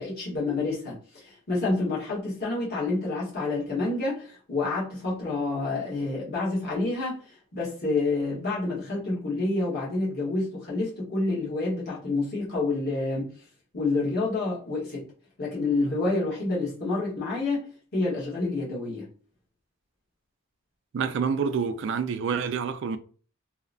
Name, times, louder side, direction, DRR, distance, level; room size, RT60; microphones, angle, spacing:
voice 1, 0.0-7.2 7.5-13.3 13.7-15.1 15.4-19.1, left 3 dB, 50° left, 1.1 m, -28 dB
voice 2, 20.9-23.0, right 6 dB, 60° right, 0.3 m, -27 dB
2.7 x 2.0 x 2.5 m
head